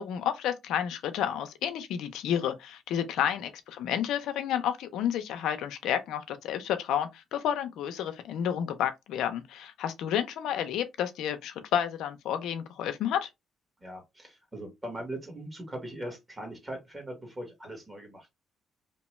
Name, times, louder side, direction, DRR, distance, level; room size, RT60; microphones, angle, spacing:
voice 1, 0.0-13.3, left 9 dB, 85° left, 0.4 m, -30 dB
voice 2, 13.8-18.3, right 1 dB, 20° right, 1.4 m, -40 dB
2.8 x 2.2 x 3.0 m
cardioid pair, 90°, 0 cm